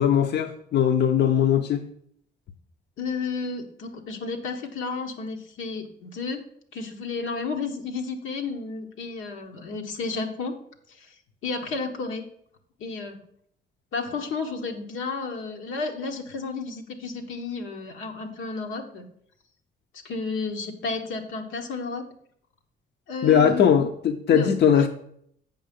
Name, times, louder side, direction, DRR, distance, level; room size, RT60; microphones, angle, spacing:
voice 1, 0.0-1.8 23.2-24.9, left 8 dB, 60° left, 6 dB, 0.7 m, -20 dB
voice 2, 3.0-6.4 6.7-10.6 11.0-11.1 11.4-12.3 12.8-13.2 13.9-19.1 20.0-22.0 23.1-23.7 24.3-24.9, left 4 dB, 85° left, 3 dB, 1.2 m, -32 dB
7.7 x 5.7 x 5.2 m, 0.68 s
cardioid pair, 90°, 20 cm